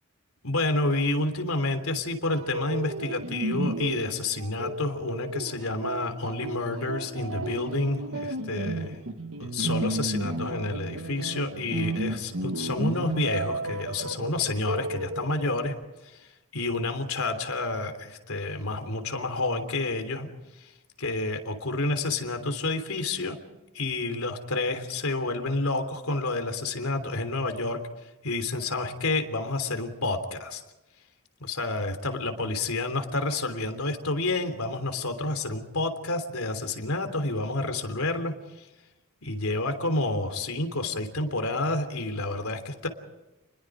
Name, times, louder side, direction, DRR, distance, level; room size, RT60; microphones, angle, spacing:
voice 1, 0.4-9.0 9.4-15.7 16.0-20.3 20.5-20.7 21.0-23.4 23.7-27.8 28.2-30.6 31.4-38.7 39.2-42.9, left 2 dB, 80° left, 7 dB, 3.3 m, -29 dB
sound 1, 2.3-15.7, right 1 dB, 70° right, 1.6 m, -33 dB
29.5 x 21.5 x 5.0 m, 1.0 s
head